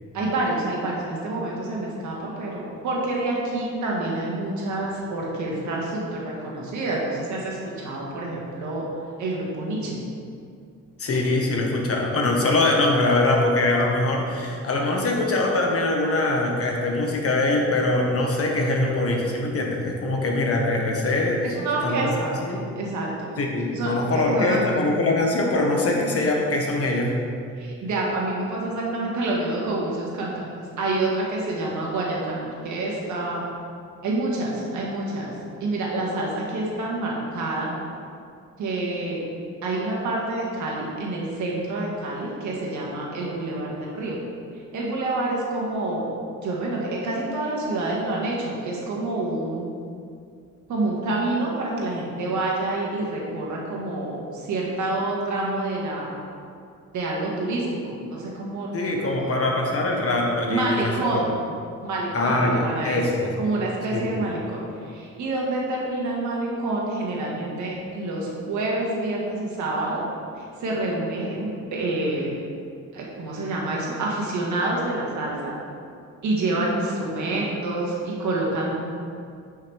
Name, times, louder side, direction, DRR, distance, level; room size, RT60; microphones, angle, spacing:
voice 1, 0.1-8.9 9.2-10.0 21.4-22.3 22.8-23.3 23.7-24.6 27.6-33.5 34.0-35.3 35.6-37.7 38.6-39.2 39.6-44.2 44.7-46.0 46.4-49.7 50.7-56.2 56.9-58.7 59.0-59.4 60.5-61.3 61.8-63.0 63.4-70.0 70.4-72.4 72.9-75.5 76.2-78.8, right 2 dB, 70° right, -3 dB, 1.9 m, -27 dB
voice 2, 11.0-21.4 21.8-22.1 22.5-22.6 23.4-27.1 58.7-61.2 62.1-63.3 63.9-64.2, left 2 dB, 50° left, 0 dB, 1.5 m, -23 dB
9.5 x 5.6 x 3.5 m, 2.3 s
cardioid pair, 90°, 30 cm